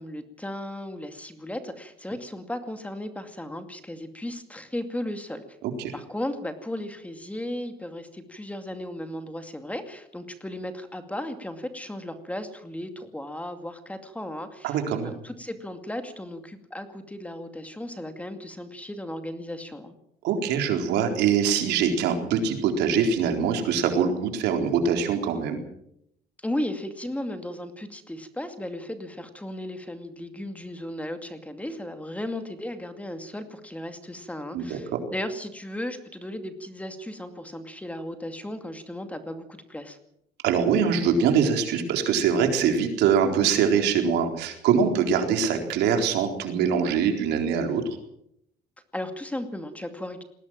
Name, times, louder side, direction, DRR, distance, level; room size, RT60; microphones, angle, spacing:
voice 1, 0.0-5.4 5.9-19.9 26.4-40.0 48.9-50.2, left 1 dB, 10° left, 7 dB, 2.4 m, -35 dB
voice 2, 14.6-15.1 20.2-25.6 34.5-35.0 40.4-48.0, right 7 dB, 85° right, 4 dB, 4.1 m, -23 dB
20.5 x 17.0 x 7.6 m, 0.75 s
cardioid pair, 110°, 17 cm